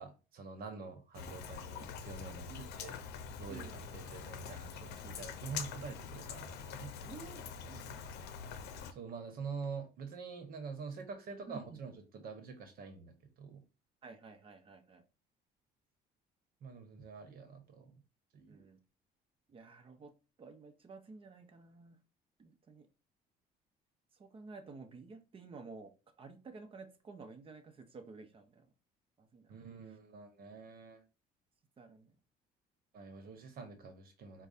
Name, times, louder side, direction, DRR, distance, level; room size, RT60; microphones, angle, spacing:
voice 1, 0.0-3.0 3.3-6.9 8.9-13.6 16.6-17.9 18.3-18.7 29.5-31.0 32.9-34.5, right 5 dB, 60° right, 7 dB, 1.1 m, -46 dB
Rain, 1.1-8.9, left 6 dB, 80° left, 0.6 m, -45 dB
voice 2, 7.0-7.9 11.5-11.8 14.0-15.0 18.5-18.8 19.5-20.1 20.4-22.0 22.4-22.9 24.2-25.9 26.2-28.7 29.2-29.5 31.8-32.1, right 4 dB, 30° right, 6 dB, 0.9 m, -52 dB
4.7 x 2.3 x 4.1 m, 0.32 s
cardioid pair, 110°, 17 cm